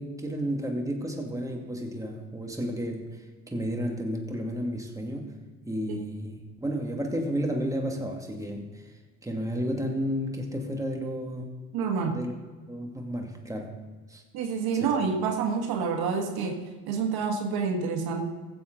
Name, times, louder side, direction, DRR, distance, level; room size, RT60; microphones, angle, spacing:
voice 1, 0.0-3.2 3.5-5.3 5.7-8.9 9.2-11.5 12.0-12.3 12.7-13.8 14.1-14.2 14.7-14.9, equal, 10° right, 1 dB, 2.3 m, -32 dB
voice 2, 11.7-12.2 14.3-16.6 16.9-18.2, right 5 dB, 70° right, 3 dB, 1.6 m, -28 dB
15.5 x 7.7 x 3.9 m, 1.4 s
hypercardioid pair, 60°, 39 cm